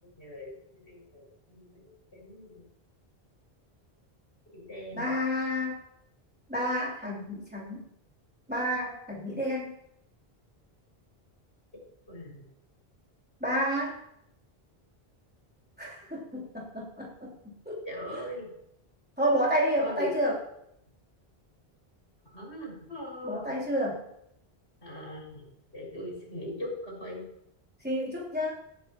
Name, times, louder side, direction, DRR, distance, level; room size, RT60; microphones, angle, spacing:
voice 1, 0.2-2.6 4.5-5.0 12.1-12.4 17.8-18.5 19.8-20.3 22.3-23.5 24.8-25.4 25.7-27.2, equal, 85° left, -2 dB, 6.2 m, -40 dB
voice 2, 4.9-5.8 6.5-7.8 8.5-9.7 13.4-14.0 15.8-17.3 17.7-17.8 18.1-18.2 19.2-20.4 23.2-24.0 27.8-28.5, equal, 10° right, -6 dB, 3.5 m, -30 dB
18.5 x 9.6 x 3.1 m, 0.77 s
omnidirectional pair, 1.0 m